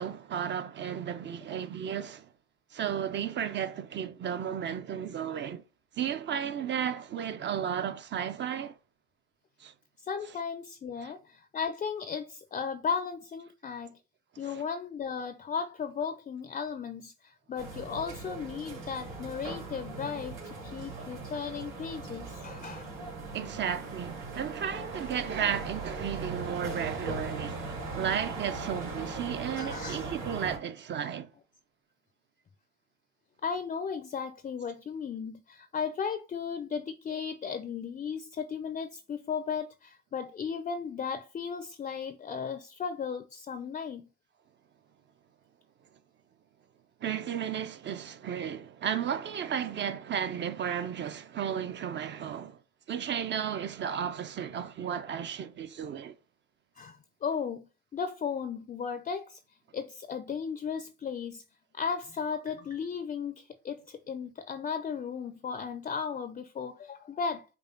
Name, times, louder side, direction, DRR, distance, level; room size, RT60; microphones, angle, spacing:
voice 1, 0.0-2.3 2.7-5.6 6.0-8.7 9.6-9.7 11.0-11.1 14.3-14.6 23.3-31.3 47.0-52.6 52.9-56.2, right 8 dB, 35° right, 0.5 m, -34 dB
voice 2, 10.0-14.0 14.4-22.9 29.6-30.0 33.4-44.1 56.8-59.4 59.7-61.4 61.7-67.5, left 6 dB, 25° left, 0.4 m, -35 dB
sound 1, 17.6-30.6, right 3 dB, 75° right, 2.6 m, -39 dB
5.4 x 2.2 x 3.8 m
cardioid pair, 100°, 31 cm